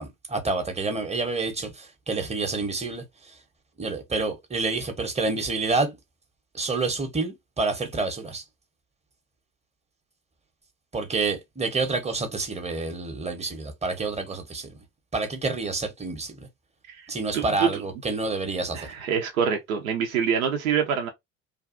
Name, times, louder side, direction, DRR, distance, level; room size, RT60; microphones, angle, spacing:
voice 1, 0.0-3.0 3.8-6.0 6.5-8.4 10.9-14.8 15.1-16.5 17.1-18.8, right 3 dB, 15° right, 0.8 m, -28 dB
voice 2, 17.3-17.8 18.7-21.1, right 7 dB, 80° right, 0.6 m, -25 dB
2.6 x 2.3 x 2.4 m
figure-of-eight pair, 60°, 41 cm